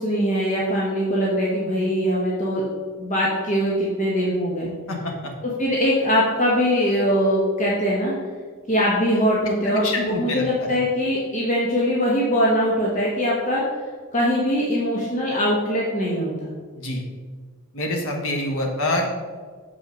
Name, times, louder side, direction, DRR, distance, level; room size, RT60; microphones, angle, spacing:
voice 1, 0.0-2.6 3.0-4.7 5.6-8.1 8.7-13.6 14.1-16.5, equal, 35° left, -5 dB, 1.2 m, -22 dB
voice 2, 4.9-5.3 9.6-10.7 16.7-17.0 17.7-19.1, left 1 dB, 65° left, 1 dB, 1.3 m, -26 dB
6.9 x 5.5 x 5.2 m, 1.5 s
head